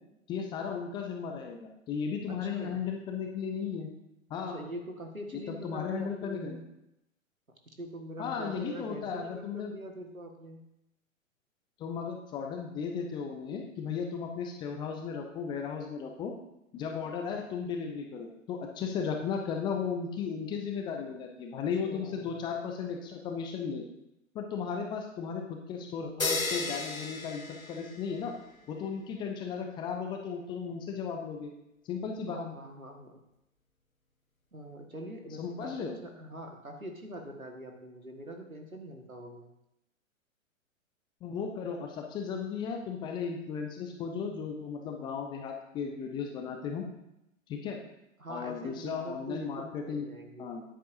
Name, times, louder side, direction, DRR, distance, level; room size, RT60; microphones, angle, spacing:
voice 1, 0.3-3.9 4.3-4.6 5.5-6.6 8.2-9.7 11.8-16.3 16.7-23.8 24.3-28.3 28.7-31.5 31.9-32.4 35.4-36.0 41.2-46.8 47.5-47.8 48.3-50.0 50.4-50.6, left 6 dB, 10° left, 3 dB, 0.5 m, -35 dB
voice 2, 2.3-2.8 4.4-6.6 7.8-10.6 21.8-22.4 32.3-33.3 34.5-39.5 48.2-50.6, right 1 dB, 90° right, 3 dB, 1.8 m, -43 dB
sound 1, 26.2-28.3, left 3 dB, 90° left, 1.0 m, -34 dB
13.0 x 10.0 x 2.7 m, 0.85 s
figure-of-eight pair, 115°, 40 cm